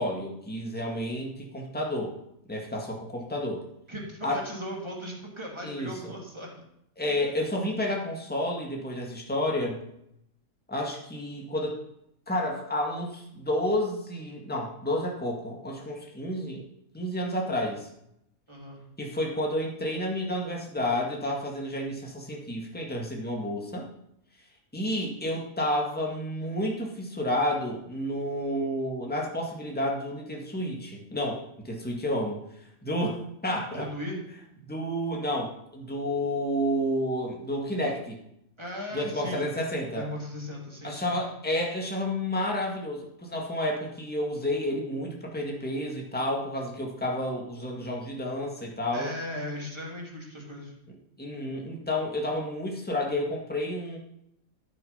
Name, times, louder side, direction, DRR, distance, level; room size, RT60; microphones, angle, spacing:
voice 1, 0.0-2.2 2.5-3.6 4.2-4.4 5.6-6.1 7.0-9.8 10.7-11.8 12.3-16.6 16.9-17.9 19.0-23.9 24.7-32.4 32.8-33.9 34.6-38.2 38.9-40.1 40.8-49.1 51.2-54.0, left 1 dB, 5° left, -1 dB, 1.9 m, -30 dB
voice 2, 3.9-6.6 18.5-18.8 33.7-34.2 38.6-39.4 39.9-41.2 48.9-50.8, equal, 20° right, -1 dB, 2.8 m, -37 dB
13.5 x 6.6 x 5.6 m, 0.77 s
omnidirectional pair, 1.5 m